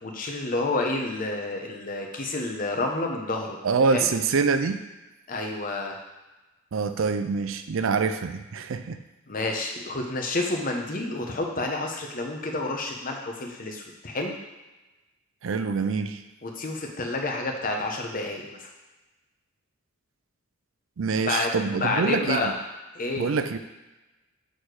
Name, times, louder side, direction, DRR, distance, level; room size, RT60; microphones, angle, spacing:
voice 1, 0.0-3.6 3.9-4.1 5.3-6.0 9.3-14.3 16.4-18.7 21.3-22.5 22.9-23.3, left 2 dB, 40° left, 1 dB, 0.9 m, -29 dB
voice 2, 3.6-4.8 6.7-9.0 15.4-16.2 21.0-22.5 23.2-23.6, right 5 dB, 65° right, 9 dB, 0.4 m, -25 dB
6.5 x 4.3 x 4.8 m, 1.1 s
head